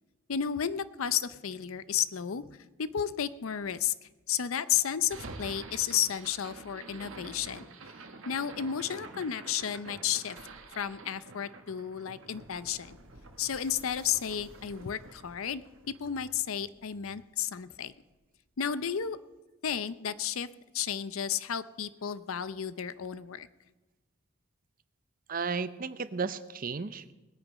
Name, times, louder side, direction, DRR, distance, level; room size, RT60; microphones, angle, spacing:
voice 1, 0.3-7.6 8.3-10.4 10.8-13.0 13.4-17.9 18.6-19.2 19.6-20.5 20.7-23.5, left 9 dB, 80° left, 15 dB, 0.6 m, -32 dB
sound 1, 5.0-17.3, right 3 dB, 70° right, 1.5 m, -48 dB
voice 2, 25.3-27.1, right 5 dB, 40° right, 14 dB, 0.6 m, -34 dB
20.5 x 9.1 x 5.2 m, 1.2 s
head